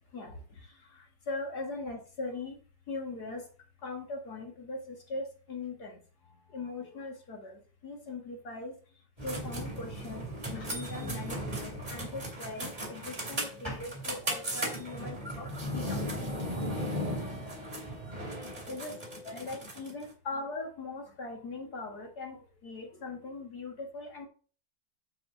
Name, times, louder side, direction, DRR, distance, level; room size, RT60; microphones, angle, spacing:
voice 1, 0.9-2.6 2.9-3.4 3.8-6.0 6.5-8.8 9.2-16.0 18.7-18.9 19.2-24.3, left 3 dB, 60° left, 1 dB, 2.5 m, -40 dB
sound 1, 9.2-20.0, equal, 25° right, 2.8 m, -36 dB
7.6 x 6.9 x 3.9 m, 0.40 s
omnidirectional pair, 1.9 m